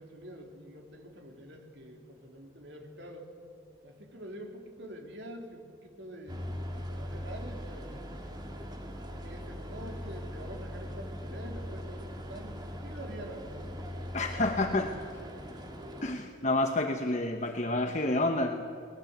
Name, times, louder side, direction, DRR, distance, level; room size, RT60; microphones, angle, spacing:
voice 1, 0.0-3.3 3.8-6.5 6.9-8.0 9.1-13.7 13.9-15.7, right 1 dB, 65° right, 2 dB, 3.5 m, -46 dB
sound 1, 6.3-16.2, equal, 20° right, 2.0 m, -40 dB
voice 2, 14.1-14.9 16.0-18.6, left 2 dB, 35° left, 5 dB, 1.0 m, -29 dB
22.5 x 20.0 x 8.2 m, 2.4 s
head